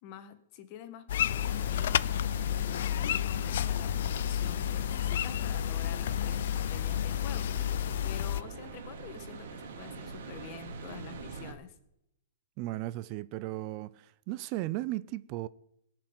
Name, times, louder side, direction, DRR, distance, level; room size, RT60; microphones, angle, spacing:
voice 1, 0.0-2.0 2.5-7.5 8.0-11.7, left 10 dB, 40° left, 1.5 m, -47 dB
sound 1, 1.1-8.4, left 11 dB, 65° left, 0.4 m, -30 dB
sound 2, 1.3-11.5, right 4 dB, 65° right, 2.6 m, -45 dB
voice 2, 12.6-15.5, right 17 dB, 35° right, 0.5 m, -36 dB
17.5 x 6.1 x 8.9 m
hypercardioid pair, 145°, 0 cm